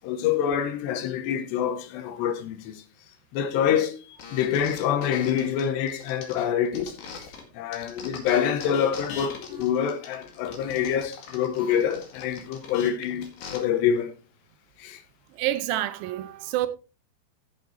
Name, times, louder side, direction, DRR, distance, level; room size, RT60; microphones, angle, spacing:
voice 1, 0.0-2.8 3.3-7.3 7.5-14.1 14.8-15.0, left 8 dB, 80° left, 3.0 m, -26 dB
sound 1, 4.2-7.4 7.7-13.6, left 5 dB, 55° left, 3.3 m, -41 dB
voice 2, 15.4-16.7, right 14 dB, 80° right, 2.6 m, -28 dB
15.0 x 7.5 x 3.1 m
omnidirectional pair, 5.1 m